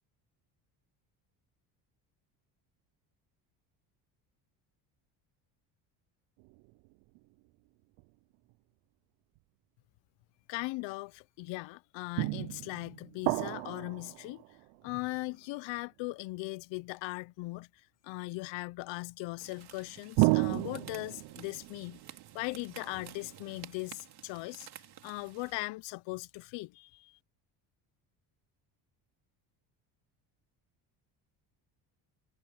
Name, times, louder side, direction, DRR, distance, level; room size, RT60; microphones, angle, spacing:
sound 1, 6.4-7.2 8.0-8.1 12.2-15.0 20.2-23.6, right 27 dB, 85° right, 0.5 m, -33 dB
voice 1, 10.5-14.4 14.8-22.0 22.3-27.2, left 22 dB, 75° left, 0.7 m, -39 dB
sound 2, 19.4-25.5, right 11 dB, 55° right, 3.1 m, -52 dB
cardioid pair, 95°, 45 cm